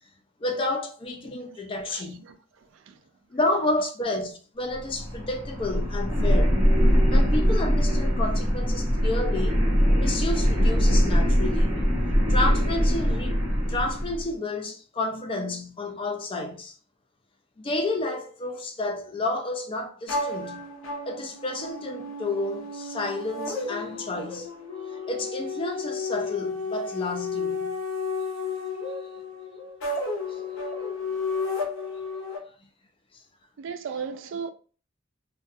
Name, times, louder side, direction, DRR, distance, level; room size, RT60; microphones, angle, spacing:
voice 1, 0.4-2.2 3.3-6.6 7.1-9.6 10.0-11.7 12.3-16.8 17.6-20.7 21.0-24.5 24.9-27.8 30.3-30.4, left 2 dB, 25° left, 0.3 m, -30 dB
voice 2, 1.9-2.4 2.7-3.0 33.6-34.5, right 6 dB, 65° right, 0.3 m, -36 dB
sound 1, 4.7-14.2, equal, 10° right, 0.8 m, -22 dB
sound 2, 20.1-32.4, left 3 dB, 85° left, 0.6 m, -32 dB
2.3 x 2.2 x 2.5 m
head